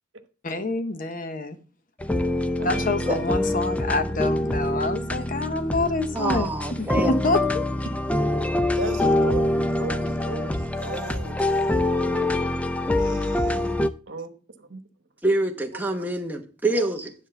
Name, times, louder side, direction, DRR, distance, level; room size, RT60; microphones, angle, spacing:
voice 1, 0.4-1.6 2.6-7.7, left 2 dB, 45° left, 0.8 m, -27 dB
sound 1, 2.0-13.9, left 1 dB, 5° left, 0.4 m, -25 dB
voice 2, 2.6-3.8 8.7-11.8 13.0-13.8 14.1-14.8 15.7-15.9, right 3 dB, 80° right, 1.1 m, -36 dB
voice 3, 6.1-7.2 15.2-17.1, right 1 dB, 10° right, 1.0 m, -26 dB
10.0 x 3.6 x 6.7 m
head